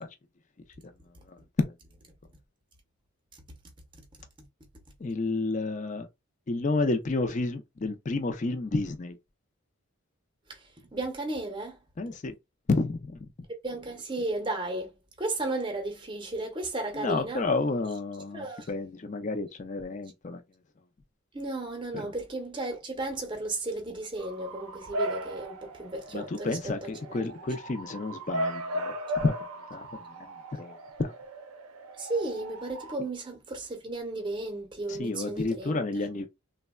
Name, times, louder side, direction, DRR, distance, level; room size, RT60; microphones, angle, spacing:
voice 1, 1.3-1.7 5.0-6.1 6.5-9.2 12.0-12.3 12.7-13.2 16.9-20.4 21.9-22.1 26.1-28.9 29.2-29.3 29.7-31.1 34.9-36.3, left 3 dB, 35° left, 0.4 m, -30 dB
voice 2, 10.5-11.8 13.6-17.4 18.3-18.7 21.3-27.2 32.0-35.9, right 2 dB, 20° right, 0.7 m, -34 dB
Bark / Motor vehicle (road) / Siren, 24.2-33.0, right 1 dB, 85° right, 0.6 m, -37 dB
3.3 x 2.1 x 2.2 m
head